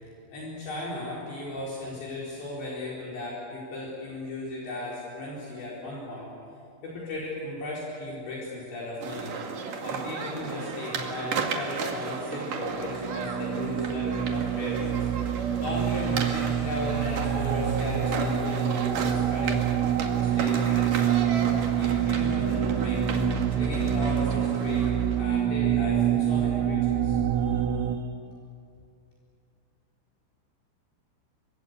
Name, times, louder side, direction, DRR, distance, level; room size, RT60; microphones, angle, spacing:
voice 1, 0.3-6.3 6.8-9.3 9.8-19.6 20.2-21.4 21.7-23.0 23.5-28.0, left 2 dB, 60° left, -5 dB, 6.4 m, -36 dB
sound 1, 9.0-25.4, right 5 dB, 55° right, 2.8 m, -34 dB
sound 2, 12.7-28.0, right 9 dB, 80° right, 3.9 m, -26 dB
27.0 x 24.0 x 8.1 m, 2.4 s
omnidirectional pair, 5.9 m